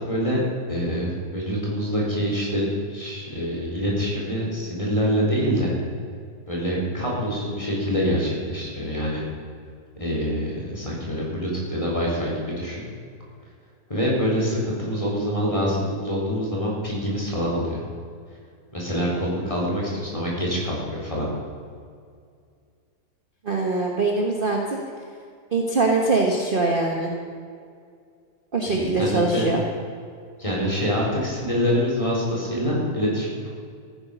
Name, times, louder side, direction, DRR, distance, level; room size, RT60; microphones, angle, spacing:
voice 1, 0.1-0.4 0.7-5.7 6.5-9.2 10.0-12.8 13.9-17.8 18.7-21.3 28.7-29.5 30.4-33.5, equal, 20° left, -5 dB, 4.1 m, -25 dB
voice 2, 23.4-24.8 25.5-27.1 28.5-29.6, right 3 dB, 35° right, 0 dB, 1.3 m, -22 dB
15.0 x 10.0 x 6.7 m, 2.2 s
omnidirectional pair, 1.8 m